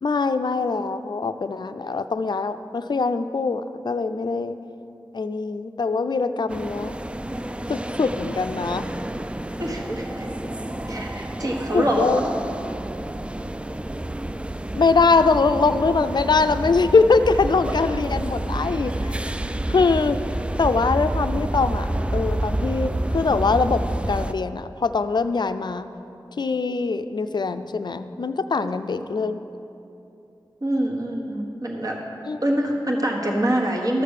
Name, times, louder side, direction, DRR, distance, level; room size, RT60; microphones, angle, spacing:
voice 1, 0.0-4.6 5.1-6.9 7.7-8.8 11.7-12.2 14.7-19.2 19.7-20.2 20.6-25.8 26.4-29.4 32.3-32.4, left 4 dB, 60° left, 10 dB, 0.4 m, -22 dB
sound 1, 6.5-24.3, right 1 dB, 15° right, 0.3 m, -29 dB
voice 2, 9.6-10.3 10.9-12.3 30.6-32.0 32.4-34.0, right 1 dB, 45° right, -1 dB, 1.4 m, -25 dB
13.0 x 6.7 x 6.5 m, 2.8 s
wide cardioid pair, 85°, 9 cm